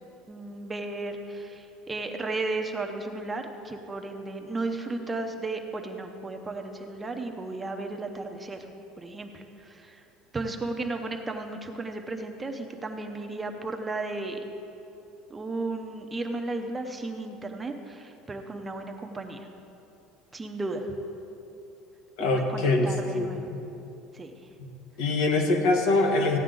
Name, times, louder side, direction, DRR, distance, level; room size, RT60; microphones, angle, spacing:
voice 1, 0.3-8.7 9.0-10.0 10.3-14.4 15.3-19.5 20.3-20.9 22.2-23.4 24.1-24.3, right 2 dB, 15° right, 4 dB, 0.7 m, -34 dB
voice 2, 22.2-23.6 25.0-26.4, left 2 dB, 75° left, 2 dB, 1.4 m, -24 dB
15.0 x 9.2 x 3.8 m, 2.8 s
cardioid pair, 145°, 0 cm